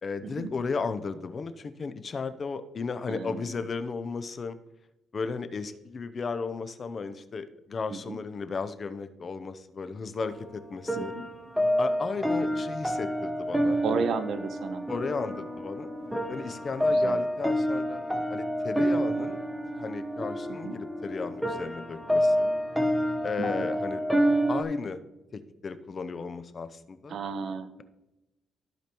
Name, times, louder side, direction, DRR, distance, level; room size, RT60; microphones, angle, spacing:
voice 1, 0.0-4.6 5.1-11.1 11.8-14.1 14.9-15.9 16.3-19.4 19.7-22.5 23.2-24.0 24.5-25.0 25.3-27.2, left 4 dB, 40° left, 12 dB, 0.6 m, -35 dB
voice 2, 3.1-3.5 7.9-8.2 11.0-11.2 13.8-14.8 16.9-17.2 20.5-20.8 23.4-23.7 27.1-27.7, right 5 dB, 65° right, 10 dB, 0.8 m, -33 dB
sound 1, 10.2-24.6, equal, 5° right, 1.0 m, -28 dB
14.5 x 5.0 x 3.0 m, 0.96 s
cardioid pair, 90°, 0 cm